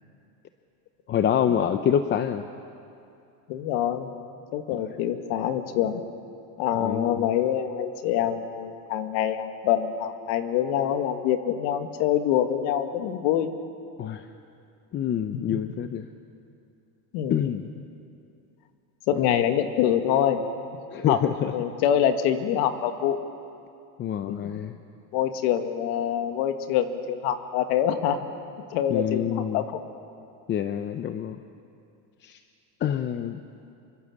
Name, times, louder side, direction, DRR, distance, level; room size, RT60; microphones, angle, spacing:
voice 1, 1.1-2.4 6.7-7.3 14.0-14.2 14.9-16.1 17.3-17.7 19.1-19.5 20.9-21.5 24.0-24.8 28.9-29.6 30.5-31.4 32.2-32.4 32.8-33.4, left 9 dB, 25° left, 8 dB, 0.7 m, -26 dB
voice 2, 3.5-4.1 4.5-6.0 6.6-13.5 15.3-15.6 17.1-17.4 19.1-20.4 21.1-21.2 21.5-23.2 24.3-24.5 25.1-28.2 28.7-29.8, left 10 dB, 65° left, 7 dB, 2.1 m, -25 dB
27.0 x 24.5 x 7.3 m, 2.5 s
cardioid pair, 155°, 45 cm